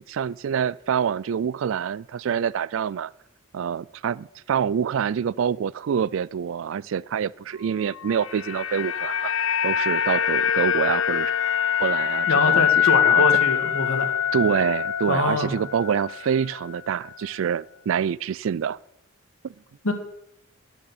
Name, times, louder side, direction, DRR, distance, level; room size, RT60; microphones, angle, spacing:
voice 1, 0.0-3.1 3.5-11.3 11.8-13.2 14.3-18.8, right 7 dB, 70° right, 0.3 m, -26 dB
sound 1, 7.9-16.2 16.5-16.7, left 9 dB, 65° left, 0.5 m, -23 dB
voice 2, 12.3-14.1 15.1-15.5 19.8-19.9, left 2 dB, 90° left, 1.8 m, -24 dB
10.5 x 7.0 x 7.8 m
head